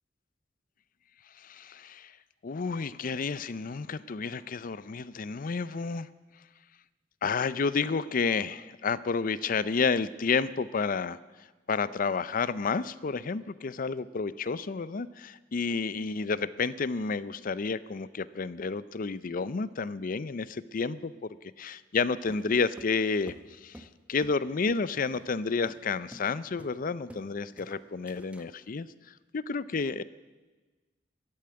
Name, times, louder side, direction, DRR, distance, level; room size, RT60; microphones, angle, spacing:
voice 1, 1.4-2.1 2.4-6.1 7.2-11.2 11.7-21.1 21.6-23.3 23.6-28.9 29.3-30.0, left 4 dB, 50° left, 17 dB, 0.5 m, -30 dB
sound 1, 22.3-24.4 24.7-24.9 25.1-25.3 25.6-25.8 26.1-26.3 26.6-27.3 27.6-28.5, equal, 5° right, 0.9 m, -49 dB
13.5 x 8.6 x 9.5 m, 1.2 s
head